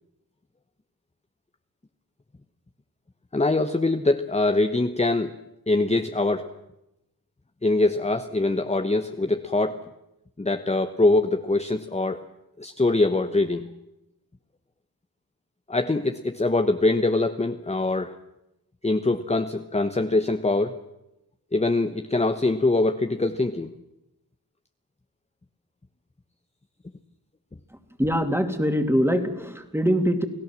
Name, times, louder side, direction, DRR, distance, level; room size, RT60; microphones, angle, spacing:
voice 1, 3.3-5.3 5.7-6.5 7.6-9.8 10.4-12.2 12.6-13.7 15.7-18.2 18.8-20.8 21.5-23.7, left 2 dB, 15° left, 7 dB, 1.1 m, -23 dB
voice 2, 27.7-30.3, equal, 5° right, 7 dB, 2.8 m, -23 dB
29.5 x 17.0 x 7.6 m, 0.89 s
wide cardioid pair, 75°, 38 cm